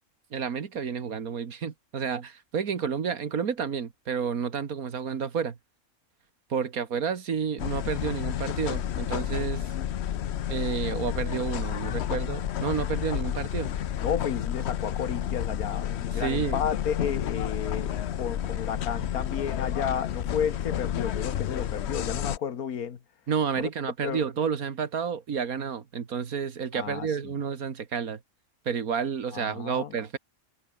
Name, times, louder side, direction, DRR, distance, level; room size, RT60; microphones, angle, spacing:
voice 1, 0.3-5.6 6.5-9.7 10.5-13.7 16.1-16.6 23.3-28.2 28.7-30.2, right 6 dB, 75° right, 2.0 m, -30 dB
sound 1, 7.6-22.4, left 10 dB, 55° left, 0.9 m, -31 dB
voice 2, 14.0-23.0 23.6-23.7 24.0-24.3 26.7-27.1 29.3-30.0, left 7 dB, 80° left, 1.8 m, -32 dB
omnidirectional pair, 1.5 m